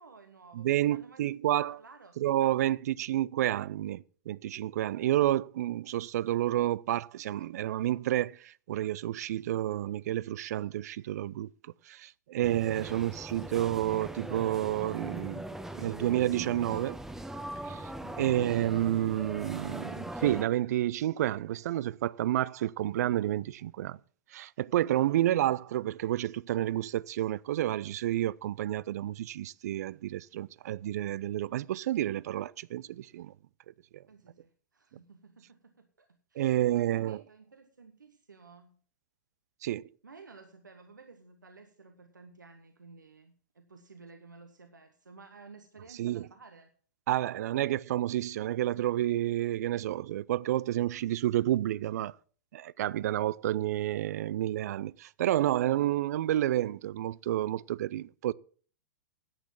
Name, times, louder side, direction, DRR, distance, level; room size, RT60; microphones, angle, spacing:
voice 1, 0.0-1.2 1.7-2.1 12.8-13.1 13.4-13.5 18.0-18.4 25.1-25.3 34.1-38.8 40.0-46.7, right 4 dB, 85° right, 1.1 m, -54 dB
voice 2, 0.5-1.8 2.2-11.5 11.9-15.4 15.8-17.0 17.6-17.9 18.2-24.0 24.3-33.3 33.9-34.0 36.4-37.2 39.6-39.8 46.0-46.3 47.1-52.2 52.5-58.3, right 13 dB, 60° right, 0.4 m, -30 dB
sound 1, 12.4-20.4, right 1 dB, 5° right, 0.9 m, -40 dB
11.0 x 8.2 x 6.0 m
figure-of-eight pair, 105°, 10 cm